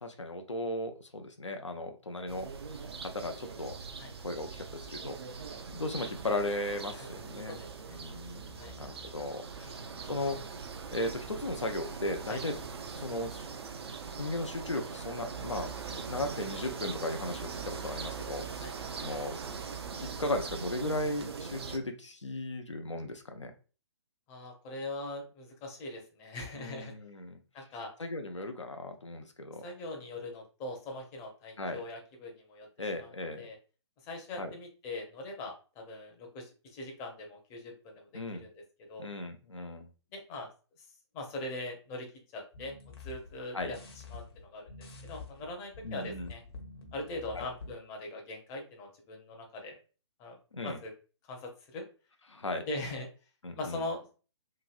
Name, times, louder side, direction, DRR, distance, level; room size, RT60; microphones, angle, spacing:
voice 1, 0.0-2.5 3.0-3.8 4.2-5.5 5.7-7.6 7.9-9.8 10.1-10.4 10.9-12.5 12.9-13.5 14.2-15.7 16.0-18.7 19.0-19.4 20.0-23.5 26.5-27.4 28.0-29.6 31.6-31.8 32.8-33.4 34.4-34.5 38.1-38.4 39.0-39.9 43.5-43.7 45.8-46.3 47.3-47.4 50.5-50.8 52.3-52.7 53.4-53.8, left 1 dB, 90° left, 5 dB, 0.5 m, -36 dB
sound 1, 2.3-21.8, right 5 dB, 60° right, 0.5 m, -41 dB
voice 2, 7.5-8.0 8.6-8.8 9.6-9.7 12.3-12.4 18.6-18.7 24.3-26.9 27.5-27.9 29.6-32.7 33.0-33.6 34.0-38.5 38.9-39.1 40.1-40.5 40.8-40.9 41.1-42.1 42.3-43.8 44.1-46.4 46.9-49.8 50.2-50.4 50.6-50.9 51.3-51.8 52.7-53.1 53.5-54.1, left 2 dB, 20° left, 1 dB, 0.6 m, -41 dB
sound 2, 42.5-47.7, left 4 dB, 55° left, 0.8 m, -48 dB
2.9 x 2.6 x 2.3 m, 0.35 s
figure-of-eight pair, 130°, 15 cm